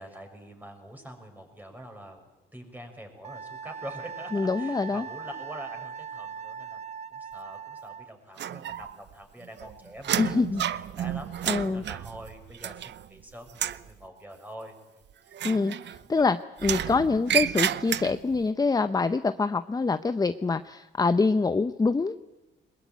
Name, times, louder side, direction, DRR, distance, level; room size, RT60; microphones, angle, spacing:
voice 1, 0.0-2.2 2.5-6.8 7.1-14.7 15.2-15.5, equal, 10° right, 4 dB, 6.3 m, -45 dB
Wind instrument woodwind instrument, 3.2-8.1, right 6 dB, 35° right, 1.0 m, -40 dB
voice 2, 4.3-5.1 10.2-10.6 11.5-11.8 15.4-22.2, left 4 dB, 20° left, 12 dB, 0.7 m, -25 dB
sound 1, 8.4-9.1 9.4-13.2 13.5-13.9 15.3-16.2 16.6-18.4, right 10 dB, 65° right, 0.8 m, -31 dB
21.5 x 21.5 x 9.3 m, 1.1 s
cardioid pair, 90°, 20 cm